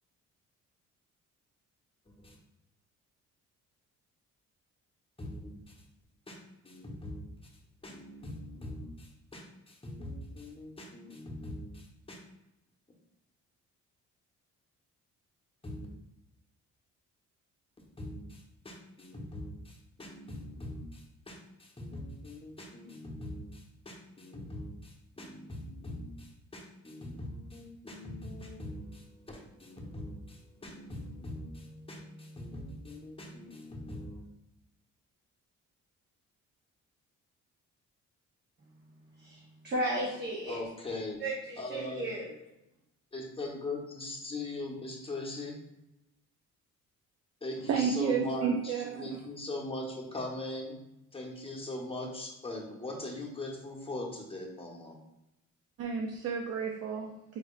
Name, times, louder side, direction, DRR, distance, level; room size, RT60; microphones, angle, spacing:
voice 1, 2.0-2.4 5.2-5.7 6.3-7.3 7.8-12.2 15.6-15.9 18.0-34.3 40.5-41.2 41.6-42.1 43.1-45.6 47.4-50.9 51.1-55.0, left 2 dB, 20° left, 1.0 m, -41 dB
voice 2, 39.2-40.6 41.2-42.3, right 1 dB, 35° right, 1.1 m, -34 dB
voice 3, 47.7-49.2 55.8-57.1, right 6 dB, 55° right, 0.6 m, -31 dB
4.8 x 3.3 x 2.4 m
cardioid pair, 90°, 30 cm